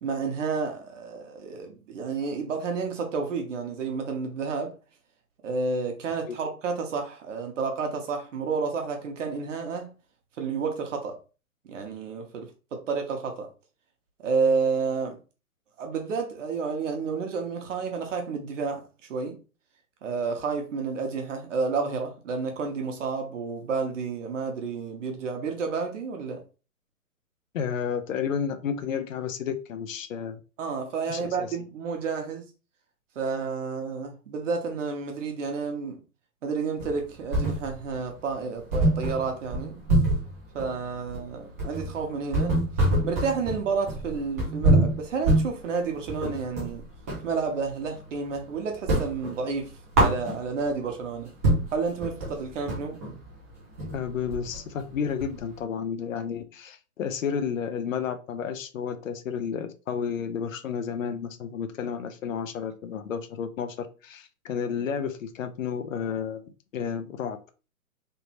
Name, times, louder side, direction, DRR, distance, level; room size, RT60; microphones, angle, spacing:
voice 1, 0.0-4.7 5.4-9.9 10.4-11.2 11.6-13.5 14.2-15.2 15.8-18.8 19.1-19.4 20.0-26.4 30.6-32.5 33.1-36.0 36.4-39.8 40.5-42.6 43.0-46.8 47.2-49.7 50.0-51.3 51.7-53.0, right 5 dB, 55° right, 1.1 m, -30 dB
voice 2, 27.5-30.4 31.1-31.5 53.9-66.4 66.7-67.4, left 7 dB, 60° left, 0.6 m, -31 dB
sound 1, 36.8-38.0 38.3-38.4 38.7-47.3 47.7-48.4 48.7-50.7 51.1-51.2 51.4-55.6, right 1 dB, 10° right, 0.4 m, -26 dB
3.4 x 2.9 x 2.9 m
hypercardioid pair, 130°, 45 cm